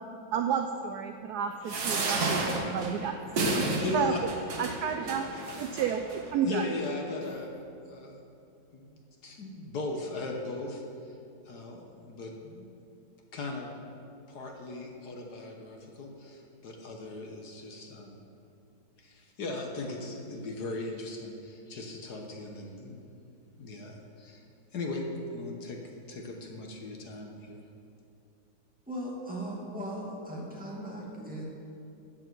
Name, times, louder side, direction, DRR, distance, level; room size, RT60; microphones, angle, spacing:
voice 1, 0.3-3.1 3.5-3.6 3.9-4.1 4.6-5.3 5.6-6.0 6.3-6.6, right 8 dB, 70° right, 5 dB, 0.9 m, -31 dB
sound 1, 1.7-6.2 6.9-7.0 7.2-7.3, right 2 dB, 55° right, 1.8 m, -31 dB
voice 2, 3.8-4.2 6.4-7.5 7.9-8.2 8.7-11.1 11.4-12.7 13.3-13.7 14.3-18.2 19.0-23.1 23.6-24.4 24.7-25.8 26.1-27.6, left 2 dB, 60° left, 2 dB, 1.5 m, -38 dB
voice 3, 28.9-31.4, right 1 dB, 5° right, -5 dB, 2.1 m, -38 dB
13.5 x 8.7 x 4.6 m, 2.6 s
omnidirectional pair, 2.1 m